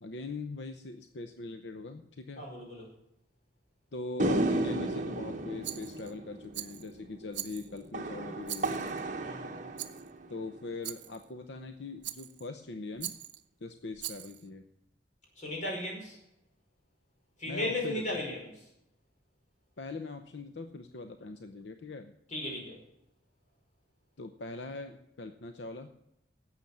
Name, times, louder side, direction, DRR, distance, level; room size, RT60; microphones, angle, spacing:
voice 1, 0.0-2.4 3.9-8.8 10.3-13.1 13.6-14.7 17.5-18.2 19.8-22.1 24.2-25.9, left 3 dB, 80° left, 7 dB, 0.8 m, -41 dB
voice 2, 2.4-2.8 9.2-9.7 15.4-16.2 17.4-18.5 22.3-22.8, left 1 dB, 40° left, -1 dB, 5.0 m, -36 dB
sound 1, 4.2-10.7, right 2 dB, 45° right, 1.2 m, -34 dB
Rattle, 5.6-6.1 6.5-6.9 7.3-7.9 8.4-9.0 9.8-10.1 10.8-11.2 12.0-12.5 13.0-13.4 14.0-14.4, right 14 dB, 80° right, 0.7 m, -41 dB
12.0 x 8.1 x 7.2 m, 0.81 s
head